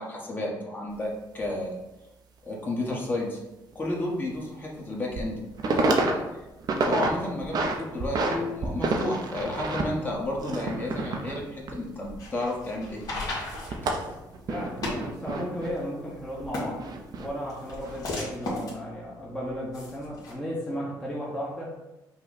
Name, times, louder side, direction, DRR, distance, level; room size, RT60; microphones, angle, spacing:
voice 1, 0.0-1.7 2.4-3.4 3.7-5.3 5.6-6.2 6.9-13.0, left 1 dB, 25° left, -3 dB, 1.3 m, -31 dB
sound 1, 0.9-1.0 1.4-1.5 3.7-3.8 4.3-4.4 4.9-5.3 5.6-6.1 6.5-7.1 7.4-8.4 8.6-12.6 12.8-15.7 16.4-17.3 17.7-18.0, right 3 dB, 55° right, 0.7 m, -29 dB
sound 2, 12.0-20.3, left 2 dB, 50° left, 1.6 m, -37 dB
voice 2, 14.5-16.8 17.1-21.7, equal, 5° left, -7 dB, 1.0 m, -35 dB
5.6 x 2.3 x 4.0 m, 0.99 s
cardioid pair, 105°, 8 cm